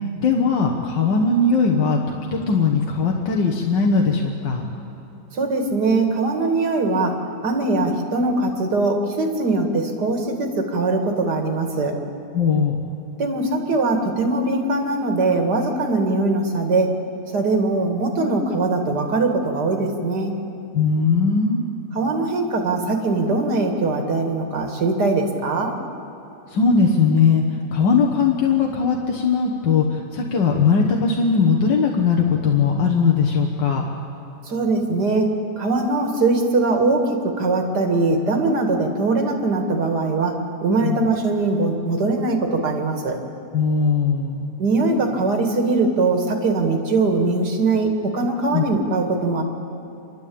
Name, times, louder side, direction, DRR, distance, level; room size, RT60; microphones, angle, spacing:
voice 1, 0.2-4.6 12.3-12.9 20.7-21.6 26.5-27.4 27.7-33.9 40.8-41.0 43.5-44.5 48.5-48.6, left 5 dB, 80° left, 0 dB, 2.0 m, -19 dB
voice 2, 5.3-11.9 13.2-16.9 17.3-20.3 21.9-25.8 34.4-43.2 44.6-49.4, right 3 dB, 65° right, 4 dB, 2.6 m, -21 dB
28.5 x 12.0 x 8.7 m, 3.0 s
omnidirectional pair, 1.9 m